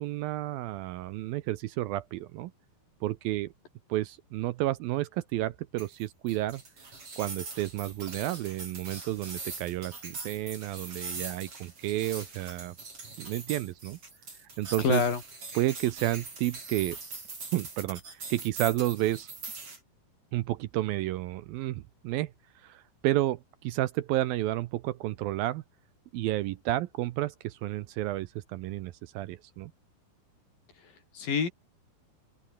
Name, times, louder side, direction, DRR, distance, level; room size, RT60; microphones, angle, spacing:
voice 1, 0.0-2.5 3.0-3.5 3.9-6.6 7.2-12.8 13.2-14.0 14.6-15.0 15.6-17.0 17.5-19.3 20.3-22.3 22.6-25.6 26.1-29.7, right 15 dB, 75° right, 2.4 m, -31 dB
sound 1, 5.8-19.8, right 3 dB, 35° right, 7.2 m, -42 dB
voice 2, 14.8-15.2 30.8-31.5, left 6 dB, 60° left, 5.8 m, -28 dB
open air
omnidirectional pair, 4.6 m